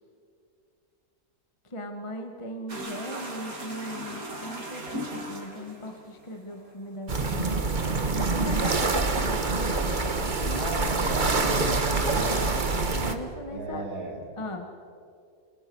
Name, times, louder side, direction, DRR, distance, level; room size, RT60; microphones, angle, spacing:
voice 1, 1.7-7.4 8.1-9.3 10.4-10.8 13.0-13.8 14.4-14.7, equal, 20° left, 4 dB, 1.7 m, -38 dB
sound 1, 2.7-11.2 11.5-12.9, right 1 dB, 70° right, 3.5 m, -40 dB
sound 2, 7.1-13.1, right 3 dB, 30° right, 1.5 m, -26 dB
voice 2, 10.5-12.5 13.5-14.2, right 1 dB, 85° right, -1 dB, 4.0 m, -34 dB
28.5 x 22.5 x 6.3 m, 2.4 s
omnidirectional pair, 1.6 m